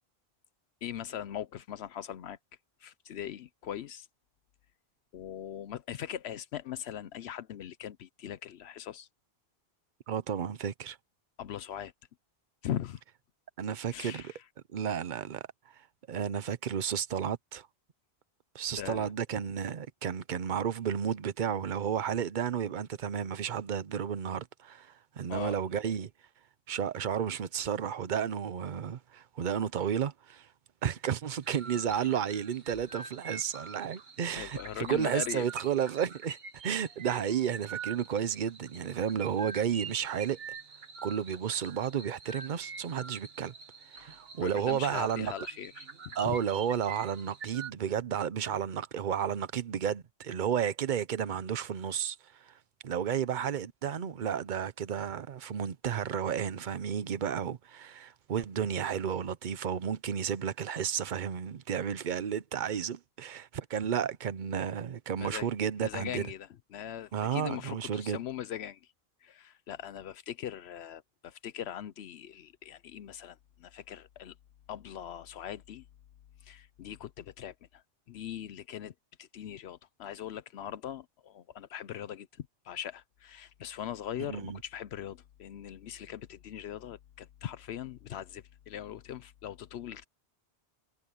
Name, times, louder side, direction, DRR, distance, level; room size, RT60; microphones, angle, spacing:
voice 1, 0.8-2.4 2.8-4.1 5.1-9.1 11.4-11.9 12.6-13.0 13.9-14.4 18.8-19.1 25.3-25.6 31.9-32.0 34.3-35.4 44.0-44.1 44.4-46.4 65.2-65.5 65.8-68.8 69.2-74.3 74.7-75.8 76.4-77.8 78.1-78.9 79.2-90.1, left 10 dB, 80° left, 0.9 m, -40 dB
voice 2, 10.1-11.0 13.6-14.3 14.7-15.5 16.1-17.7 18.5-26.1 26.7-30.5 30.8-40.4 41.0-43.5 43.9-45.3 46.1-52.2 52.4-52.5 52.8-66.3 67.1-68.2 84.3-84.6, right 8 dB, 50° right, 0.9 m, -32 dB
sound 1, 31.4-47.7, right 5 dB, 70° right, 1.6 m, -46 dB
omnidirectional pair, 1.1 m